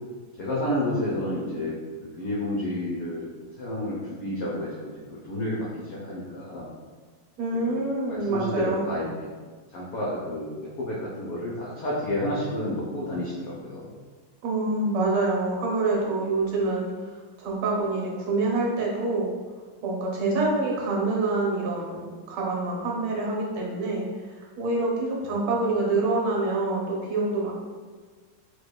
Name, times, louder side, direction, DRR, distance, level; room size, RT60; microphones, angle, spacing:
voice 1, 0.4-1.7 2.0-6.7 7.5-7.8 8.1-9.0 9.7-13.9 25.2-25.4, left 1 dB, 85° left, -6 dB, 0.7 m, -30 dB
voice 2, 7.4-8.8 14.4-19.3 19.8-24.1 24.6-27.5, right 2 dB, 80° right, -3 dB, 1.6 m, -26 dB
4.7 x 2.2 x 2.2 m, 1.5 s
omnidirectional pair, 2.3 m